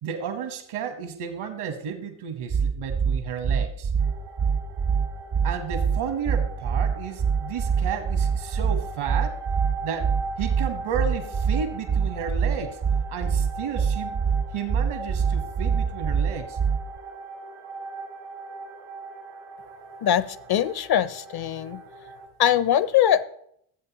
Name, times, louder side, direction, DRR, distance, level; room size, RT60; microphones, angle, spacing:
voice 1, 0.0-3.9 5.4-9.4 9.8-10.1 10.4-12.8 13.1-14.2 14.5-16.6, right 7 dB, 75° right, 7 dB, 1.3 m, -32 dB
sound 1, 2.5-17.0, right 6 dB, 25° right, 0.4 m, -24 dB
sound 2, 4.0-22.3, right 4 dB, 90° right, 1.9 m, -40 dB
voice 2, 20.0-21.8 22.4-23.2, left 10 dB, 50° left, 17 dB, 0.6 m, -22 dB
13.0 x 7.9 x 2.9 m, 0.69 s
hypercardioid pair, 40°, 50 cm